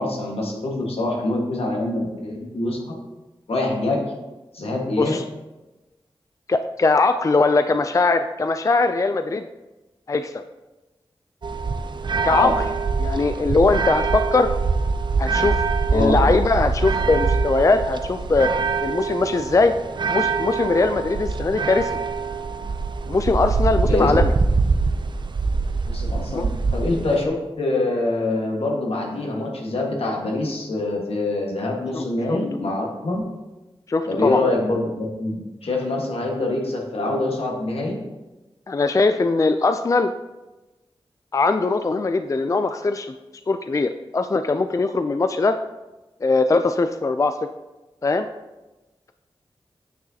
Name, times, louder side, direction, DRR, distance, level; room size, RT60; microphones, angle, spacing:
voice 1, 0.0-2.8 3.5-4.1 4.5-5.2 12.3-12.6 15.9-16.1 23.9-24.1 25.9-33.2 34.1-38.0, left 2 dB, 80° left, -1 dB, 1.5 m, -25 dB
voice 2, 6.5-9.5 10.1-10.4 12.2-12.6 13.0-14.5 15.2-15.6 15.9-18.5 18.8-19.7 20.1-21.9 23.1-24.3 26.3-26.5 31.9-32.4 33.9-34.4 38.7-40.1 41.3-43.1 43.5-45.6 46.2-47.3 48.0-48.3, left 3 dB, 35° left, 9 dB, 0.3 m, -20 dB
sound 1, 11.4-27.3, right 4 dB, 50° right, 0.4 m, -24 dB
9.3 x 6.1 x 2.8 m, 1.1 s
wide cardioid pair, 55°, 10 cm